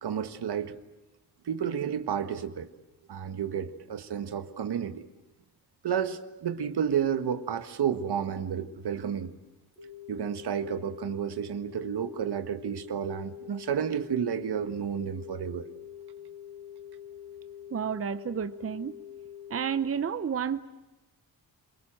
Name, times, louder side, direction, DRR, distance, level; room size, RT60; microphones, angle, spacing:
voice 1, 0.0-0.8 1.4-2.7 3.1-5.1 5.8-9.3 10.1-15.6, right 8 dB, 80° right, 1.6 m, -31 dB
sound 1, 9.8-19.8, left 9 dB, 10° right, 4.2 m, -45 dB
voice 2, 17.7-18.9 19.5-20.6, right 7 dB, 35° right, 0.8 m, -30 dB
27.0 x 23.5 x 7.7 m
wide cardioid pair, 140°, 39 cm